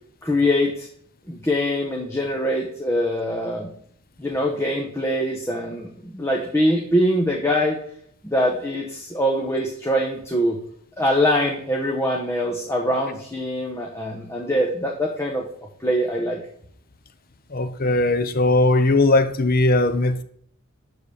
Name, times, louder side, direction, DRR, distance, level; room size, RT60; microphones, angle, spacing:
voice 1, 0.2-0.9 1.3-3.7 4.2-7.8 8.2-10.6 11.0-15.4 15.8-16.4, equal, 15° left, 1.1 m, -23 dB
voice 2, 17.5-20.2, left 2 dB, 45° left, 0.9 m, -19 dB
12.0 x 4.1 x 7.0 m
head